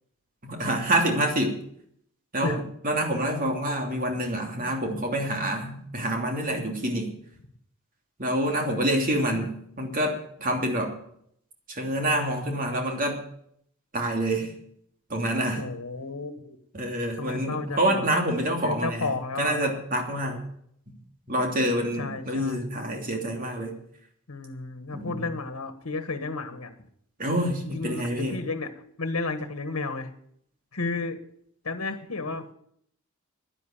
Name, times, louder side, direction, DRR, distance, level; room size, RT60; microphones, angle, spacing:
voice 1, 0.4-1.6 2.3-7.1 8.2-10.9 11.7-13.2 13.9-14.5 15.1-15.6 16.7-19.1 19.4-20.4 21.3-23.7 24.9-25.2 27.2-28.4, right 1 dB, 40° right, 2 dB, 3.0 m, -27 dB
voice 2, 2.4-2.7 9.1-9.5 15.5-16.6 17.2-18.1 18.6-19.6 21.9-22.7 24.3-26.7 27.6-28.7 29.0-30.1 30.7-31.2 31.6-32.5, left 3 dB, 85° left, 8 dB, 1.4 m, -32 dB
11.0 x 10.5 x 8.8 m, 0.68 s
head